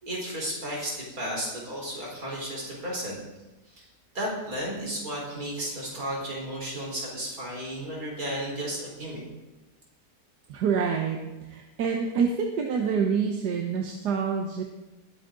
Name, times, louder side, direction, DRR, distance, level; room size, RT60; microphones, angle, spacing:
voice 1, 0.0-3.2 3.7-3.9 4.1-9.2, right 1 dB, 60° right, -3 dB, 4.8 m, -33 dB
voice 2, 10.5-11.2 11.5-14.6, right 6 dB, 85° right, 2 dB, 1.6 m, -27 dB
21.0 x 8.2 x 3.9 m, 1.1 s
omnidirectional pair, 1.7 m